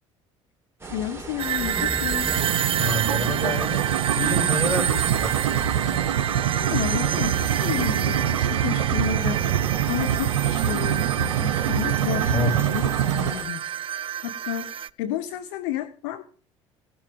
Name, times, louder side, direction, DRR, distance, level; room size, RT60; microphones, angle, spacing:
voice 1, 0.8-2.4 6.6-13.6 14.2-14.7 15.0-16.2, left 11 dB, 70° left, 12 dB, 0.8 m, -31 dB
sound 1, 0.8-13.4, right 4 dB, 15° right, 3.7 m, -36 dB
sound 2, 1.4-14.9, right 10 dB, 35° right, 0.5 m, -28 dB
sound 3, 2.3-13.3, right 10 dB, 85° right, 0.5 m, -25 dB
voice 2, 2.8-5.6 12.3-12.7, left 1 dB, 15° left, 3 dB, 6.6 m, -29 dB
17.0 x 6.9 x 5.0 m, 0.40 s
hypercardioid pair, 65°, 16 cm